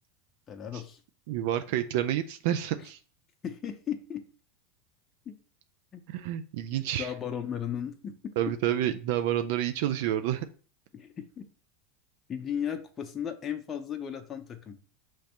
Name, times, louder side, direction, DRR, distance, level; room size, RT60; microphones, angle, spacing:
voice 1, 0.5-1.0 2.8-2.9 3.4-4.2 5.3-5.4 5.9-6.0 7.0-8.3 10.9-11.4 12.3-14.8, left 8 dB, 30° left, 5 dB, 0.6 m, -35 dB
voice 2, 1.3-3.0 6.1-7.1 8.4-10.5, right 11 dB, 65° right, 9 dB, 0.3 m, -29 dB
5.8 x 3.1 x 2.9 m, 0.38 s
hypercardioid pair, 100°, 0 cm